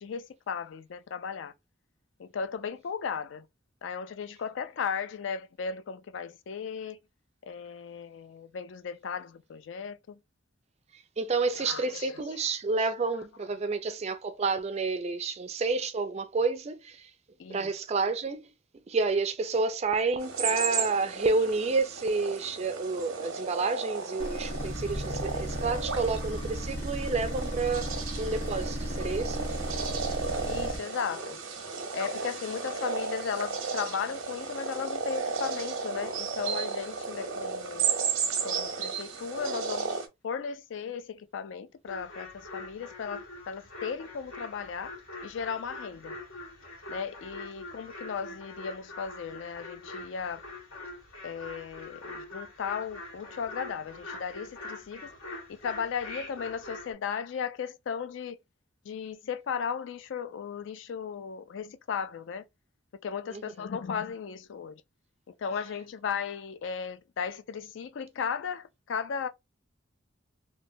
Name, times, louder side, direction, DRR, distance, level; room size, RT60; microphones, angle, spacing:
voice 1, 0.0-1.5 2.2-3.5 3.8-7.0 7.5-10.2 11.5-12.4 12.8-12.9 17.4-17.7 30.4-31.4 31.9-37.9 38.4-44.9 45.2-46.2 46.9-50.4 51.2-55.1 55.5-58.4 58.8-62.4 63.0-64.8 65.4-69.3, left 6 dB, 65° left, 0.3 m, -36 dB
voice 2, 11.2-17.1 17.5-18.4 18.9-27.9 28.2-29.5 63.3-63.4, right 3 dB, 30° right, 0.3 m, -29 dB
sound 1, 20.2-40.1, right 5 dB, 90° right, 0.7 m, -34 dB
sound 2, 24.2-30.8, equal, 30° left, 1.2 m, -35 dB
sound 3, 41.9-56.9, left 2 dB, 85° left, 1.7 m, -44 dB
3.0 x 2.2 x 2.6 m
head